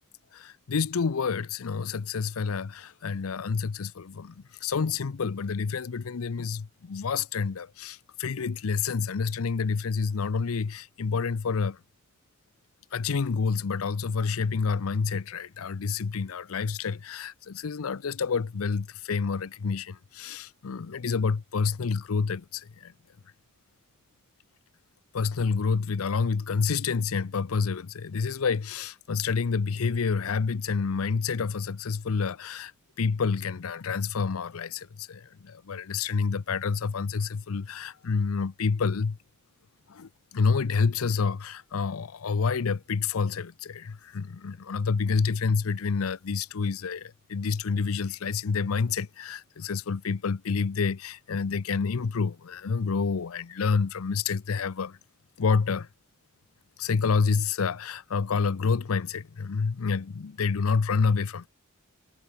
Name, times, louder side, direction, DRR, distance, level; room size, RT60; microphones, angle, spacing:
voice 1, 0.3-4.3 4.6-11.8 12.9-22.9 25.1-32.7 33.0-39.2 39.9-55.0 55.4-55.9 56.8-61.5, left 5 dB, 80° left, 0.6 m, -28 dB
head